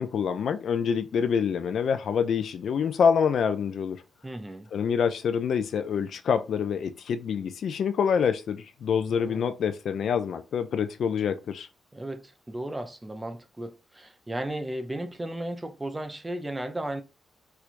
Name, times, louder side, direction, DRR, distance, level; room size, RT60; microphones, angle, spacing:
voice 1, 0.0-4.0 4.7-11.7, left 7 dB, 60° left, 0.4 m, -26 dB
voice 2, 4.2-4.7 9.1-9.5 11.9-17.0, right 1 dB, 15° right, 0.5 m, -35 dB
4.4 x 2.4 x 2.5 m
cardioid pair, 130°, 0 cm